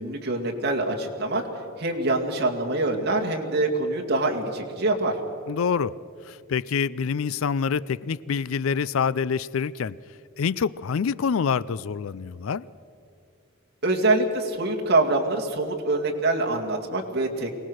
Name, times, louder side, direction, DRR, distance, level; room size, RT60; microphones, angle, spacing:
voice 1, 0.0-1.5 1.8-5.2 13.8-17.5, right 2 dB, 50° right, 1 dB, 2.4 m, -25 dB
voice 2, 5.5-5.9 6.2-10.0 10.4-12.7, left 6 dB, 75° left, 20 dB, 0.4 m, -26 dB
23.5 x 18.5 x 6.4 m, 2.5 s
head